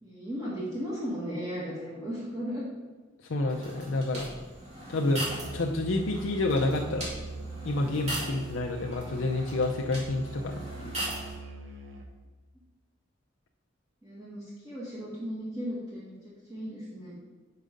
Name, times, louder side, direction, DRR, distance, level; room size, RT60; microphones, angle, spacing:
voice 1, 0.0-2.7 14.0-17.2, equal, 20° right, -7 dB, 1.4 m, -36 dB
voice 2, 3.3-4.3 4.9-5.2 5.5-7.1 7.6-11.0, left 2 dB, 85° left, 1 dB, 0.6 m, -29 dB
sound 1, 3.5-11.3, right 1 dB, 35° right, 2.2 m, -40 dB
Musical instrument, 5.2-12.2, right 2 dB, 75° right, 0.9 m, -42 dB
6.6 x 4.8 x 5.1 m, 1.3 s
head